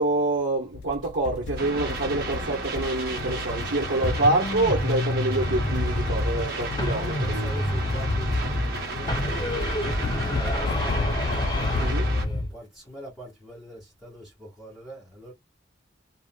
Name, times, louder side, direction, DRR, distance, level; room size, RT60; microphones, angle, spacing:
voice 1, 0.0-7.5 11.8-12.1, right 2 dB, 85° right, 1.0 m, -26 dB
sound 1, 0.7-11.8, left 5 dB, 55° left, 0.3 m, -36 dB
sound 2, 1.6-12.3, right 3 dB, 55° right, 1.2 m, -34 dB
sound 3, 4.0-6.5 6.8-8.8 9.1-12.5, left 1 dB, 25° left, 0.8 m, -27 dB
voice 2, 6.8-11.1 11.5-15.3, equal, ahead, 1.8 m, -43 dB
3.5 x 2.3 x 2.4 m
head